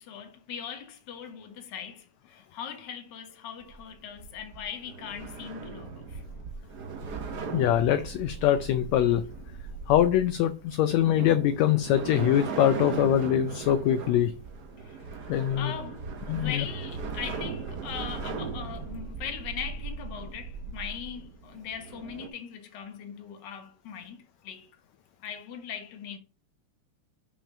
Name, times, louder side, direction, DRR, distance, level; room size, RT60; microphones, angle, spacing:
voice 1, 0.0-6.2 14.8-15.3 15.6-24.7 25.2-26.2, left 8 dB, 45° left, 1.6 m, -40 dB
sound 1, 3.6-22.3, right 5 dB, 70° right, 0.9 m, -38 dB
voice 2, 7.5-9.3 9.9-14.3 15.3-15.7 16.3-16.7, left 11 dB, 75° left, 1.7 m, -23 dB
7.0 x 5.9 x 5.5 m
omnidirectional pair, 3.5 m